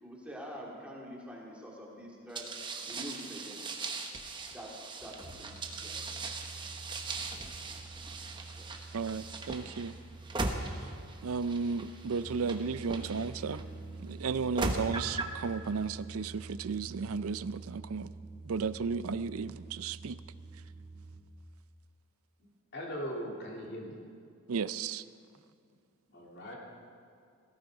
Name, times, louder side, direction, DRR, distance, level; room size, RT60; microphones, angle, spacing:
voice 1, 0.0-2.5 2.9-3.6 4.5-6.0 7.7-8.7, equal, 5° right, 2.3 m, -46 dB
sound 1, 2.3-13.6 14.3-15.4, right 3 dB, 20° right, 1.0 m, -39 dB
sound 2, 5.2-21.2, right 3 dB, 55° right, 2.3 m, -47 dB
voice 2, 8.9-10.0 10.6-10.9 11.2-13.6 14.0-18.1 18.4-20.2 24.5-25.1, right 5 dB, 80° right, 0.5 m, -34 dB
voice 3, 22.7-24.0 26.1-26.6, equal, 50° left, 3.1 m, -39 dB
17.5 x 15.0 x 5.0 m
head